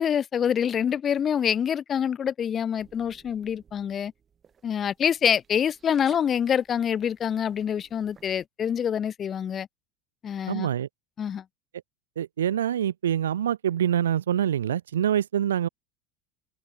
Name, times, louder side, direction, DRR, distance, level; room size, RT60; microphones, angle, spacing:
voice 1, 0.0-4.1 4.6-9.7 10.2-10.7 11.2-11.4, left 8 dB, 35° left, 0.8 m, -26 dB
sound 1, 2.8-8.5, right 7 dB, 30° right, 7.8 m, -57 dB
voice 2, 10.5-10.9 12.2-15.7, right 10 dB, 90° right, 0.6 m, -25 dB
hypercardioid pair, 85°, 0 cm